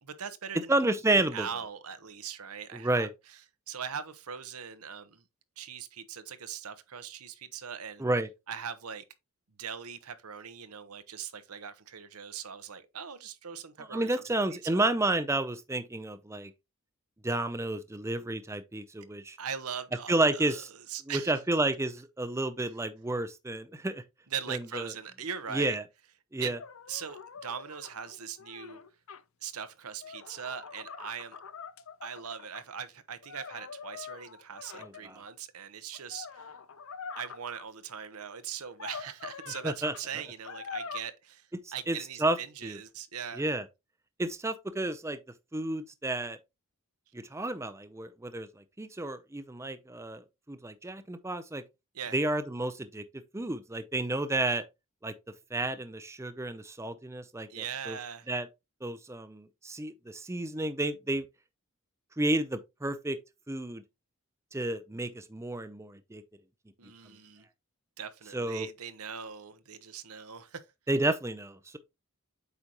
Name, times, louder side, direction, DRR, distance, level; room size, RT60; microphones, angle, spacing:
voice 1, 0.0-0.7 1.3-3.4 3.7-5.2 5.6-8.0 8.5-9.0 9.6-14.9 19.4-21.3 24.3-25.8 26.4-26.6 26.9-28.8 29.4-31.4 32.0-36.5 37.2-43.4 51.9-52.2 57.5-58.3 66.8-67.4 68.0-70.6, right 7 dB, 85° right, 0.9 m, -40 dB
voice 2, 0.7-1.5 2.7-3.1 8.0-8.3 13.9-16.5 17.2-19.4 20.1-20.7 21.1-24.0 24.5-24.8 25.5-25.8 26.3-26.6 34.8-35.2 39.6-39.9 41.9-42.4 42.6-42.8 43.4-43.6 44.2-45.2 45.5-46.4 47.1-51.6 52.1-53.0 53.3-54.6 55.0-55.1 55.5-58.0 58.3-58.5 58.8-61.2 62.2-63.2 63.5-63.8 64.5-66.2 68.3-68.7 70.9-71.8, right 2 dB, 10° right, 0.5 m, -31 dB
sound 1, 26.5-29.2 29.9-32.6 33.2-35.3 35.9-37.6 38.6-39.7 39.9-40.0 40.4-41.0, left 5 dB, 65° left, 0.6 m, -44 dB
8.2 x 5.1 x 3.0 m
head